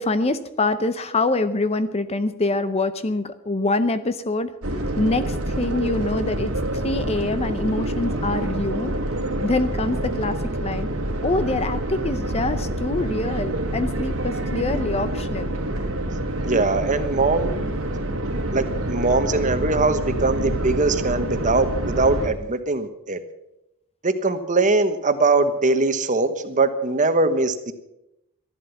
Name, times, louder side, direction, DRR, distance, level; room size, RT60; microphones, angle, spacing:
voice 1, 0.0-6.5 6.8-9.0 9.4-10.9 11.2-15.5, left 2 dB, 30° left, 12 dB, 0.6 m, -25 dB
sound 1, 4.6-22.3, right 1 dB, 75° right, 1.9 m, -27 dB
voice 2, 16.4-17.6 18.5-23.2 24.0-27.7, right 3 dB, 35° right, 9 dB, 1.1 m, -21 dB
13.5 x 11.5 x 7.0 m, 0.87 s
head